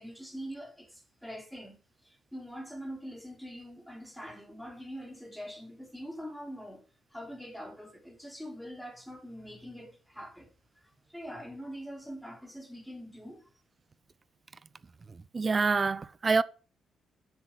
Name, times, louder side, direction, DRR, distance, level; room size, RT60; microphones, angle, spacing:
voice 1, 0.0-1.8 2.0-6.8 7.1-10.5 11.1-13.5, equal, ahead, 3.9 m, -43 dB
voice 2, 15.1-16.4, right 4 dB, 30° right, 0.7 m, -27 dB
10.5 x 8.1 x 5.9 m
cardioid pair, 90°, 0 cm